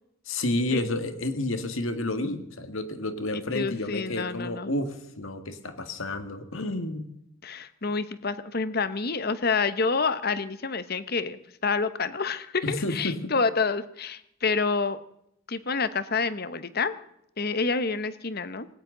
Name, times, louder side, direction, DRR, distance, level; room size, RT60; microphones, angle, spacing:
voice 1, 0.3-7.1 12.6-13.3, left 2 dB, 70° left, 8 dB, 1.9 m, -30 dB
voice 2, 3.5-4.7 7.4-15.0 15.5-17.0 17.4-18.7, left 4 dB, 45° left, 13 dB, 1.0 m, -28 dB
19.0 x 18.0 x 3.9 m, 0.76 s
head